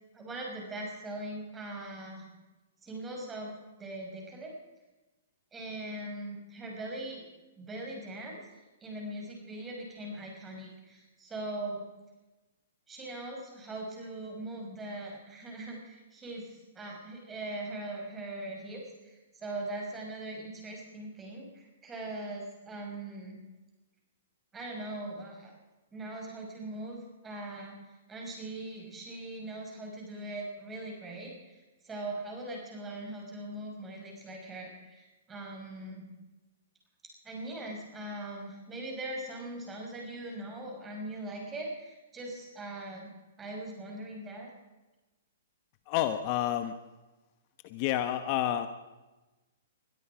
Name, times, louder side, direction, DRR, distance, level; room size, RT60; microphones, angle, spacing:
voice 1, 0.1-2.3 2.8-4.5 5.5-7.2 7.6-11.9 12.9-23.4 24.5-25.5 25.9-36.1 37.2-43.1 43.4-44.5, right 2 dB, 15° right, 0 dB, 6.1 m, -41 dB
voice 2, 45.9-46.7 47.6-48.7, left 12 dB, 40° left, 10 dB, 1.1 m, -29 dB
21.5 x 13.0 x 5.0 m, 1.1 s
hypercardioid pair, 135°, 0 cm